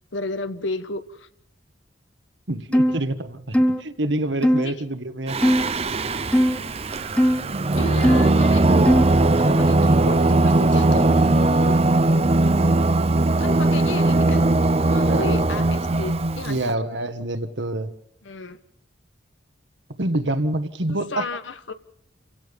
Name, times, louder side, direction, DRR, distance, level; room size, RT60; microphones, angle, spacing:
voice 1, 0.1-1.3 4.6-4.7 7.8-8.7 9.3-11.8 13.4-14.5 14.9-16.6 18.2-18.6 20.9-21.7, left 2 dB, 85° left, 10 dB, 1.4 m, -32 dB
voice 2, 2.5-5.4 15.1-15.7 16.4-17.9 20.0-21.3, right 1 dB, 70° right, 10 dB, 1.5 m, -27 dB
sound 1, 2.7-3.0 3.5-3.8 4.4-4.6 5.4-5.7 6.3-6.6 7.2-7.4 8.0-8.3 8.9-9.2, equal, 5° left, 1.0 m, -18 dB
Singing, 5.3-16.6, right 2 dB, 35° right, 0.7 m, -19 dB
29.5 x 16.5 x 5.3 m, 0.69 s
head